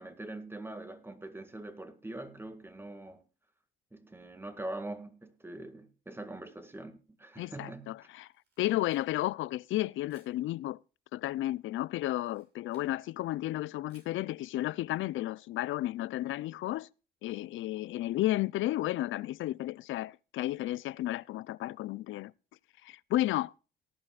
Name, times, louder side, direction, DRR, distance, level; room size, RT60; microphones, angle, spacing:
voice 1, 0.0-3.2 3.9-7.9, right 2 dB, 10° right, 1.9 m, -43 dB
voice 2, 7.4-8.3 8.6-10.8 11.1-16.9 17.2-22.3 22.8-23.5, left 15 dB, 80° left, 0.5 m, -33 dB
Camera, 8.2-9.4 10.1-10.4 12.1-12.9 13.9-14.2, right 4 dB, 55° right, 6.4 m, -67 dB
18.5 x 11.0 x 2.4 m
cardioid pair, 90°, 20 cm